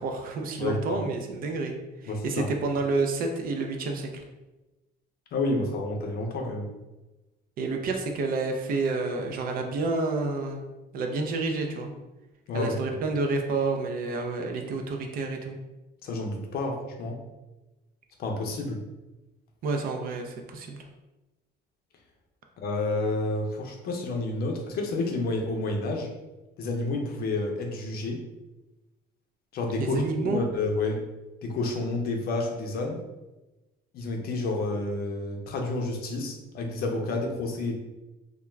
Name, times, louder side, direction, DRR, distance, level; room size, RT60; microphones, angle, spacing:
voice 1, 0.0-1.8 2.0-4.2 7.6-10.6 10.9-11.9 12.5-15.6 19.6-20.8 29.8-30.4, right 3 dB, 50° right, 4 dB, 0.4 m, -29 dB
voice 2, 0.6-1.0 2.1-2.5 5.3-6.7 12.5-12.7 16.0-17.2 18.2-18.8 22.6-26.1 26.6-28.2 29.5-31.0 31.4-33.0 33.9-37.7, left 2 dB, 55° left, 2 dB, 0.5 m, -29 dB
2.3 x 2.2 x 3.1 m, 1.1 s
cardioid pair, 120°, 19 cm